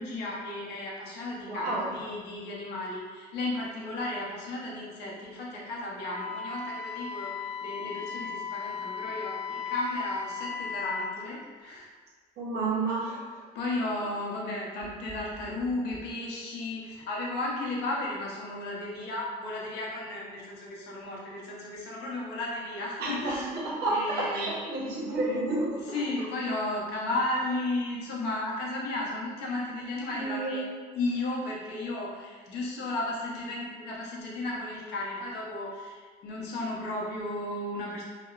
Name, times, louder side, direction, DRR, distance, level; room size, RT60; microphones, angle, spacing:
voice 1, 0.0-11.9 13.5-23.5 23.9-24.6 25.9-30.6 31.0-38.0, left 2 dB, 80° left, -3 dB, 0.7 m, -34 dB
voice 2, 1.5-1.8 12.4-13.2 23.0-26.0 30.1-30.6, right 2 dB, 70° right, -4 dB, 0.8 m, -30 dB
Wind instrument woodwind instrument, 6.1-11.1, left 6 dB, 10° right, 0.8 m, -36 dB
2.8 x 2.0 x 2.3 m, 1.5 s
cardioid pair, 110°, 17 cm